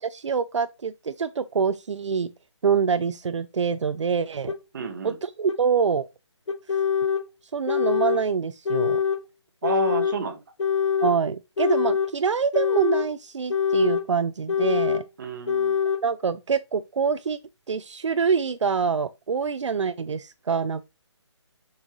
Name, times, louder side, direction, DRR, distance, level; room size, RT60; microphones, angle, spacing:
voice 1, 0.0-2.3 2.6-4.5 5.0-6.1 7.5-9.0 11.0-15.0 16.0-17.4 17.7-20.8, right 6 dB, 80° right, 0.5 m, -25 dB
sound 1, 4.5-4.6 5.5-5.6 6.5-7.2 7.7-8.2 8.7-9.2 9.6-10.2 10.6-11.2 11.6-12.1 12.5-13.1 13.5-14.1 14.5-15.0 15.5-16.0, left 7 dB, 75° left, 0.9 m, -24 dB
voice 2, 4.7-5.2 9.6-10.4 15.2-15.8, right 5 dB, 40° right, 1.4 m, -30 dB
6.1 x 5.6 x 3.1 m
hypercardioid pair, 160°, 15 cm